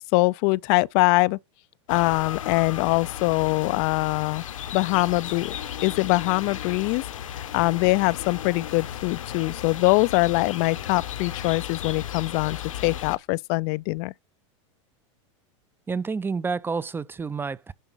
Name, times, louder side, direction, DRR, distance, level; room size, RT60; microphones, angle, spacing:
voice 1, 0.1-1.4 1.9-4.4 4.7-5.6 5.8-7.0 7.5-12.6 12.8-14.1, left 24 dB, 50° left, 0.4 m, -23 dB
sound 1, 1.9-13.2, left 10 dB, 85° left, 1.1 m, -35 dB
voice 2, 15.9-17.7, right 4 dB, 15° right, 0.4 m, -29 dB
11.0 x 3.8 x 5.6 m
hypercardioid pair, 105°, 16 cm